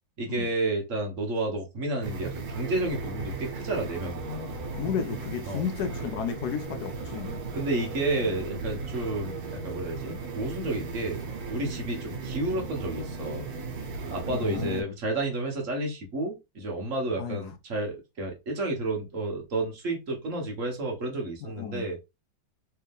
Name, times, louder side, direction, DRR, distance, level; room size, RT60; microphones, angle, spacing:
voice 1, 0.2-4.5 5.5-5.6 7.5-11.2 11.5-13.5 14.1-22.0, right 2 dB, 50° right, 1.2 m, -31 dB
sound 1, 2.0-14.8, right 4 dB, 75° right, 1.8 m, -36 dB
voice 2, 4.7-7.4 14.3-14.9 17.2-17.4 21.4-21.9, left 7 dB, 75° left, 1.0 m, -33 dB
3.3 x 3.3 x 3.4 m
omnidirectional pair, 2.0 m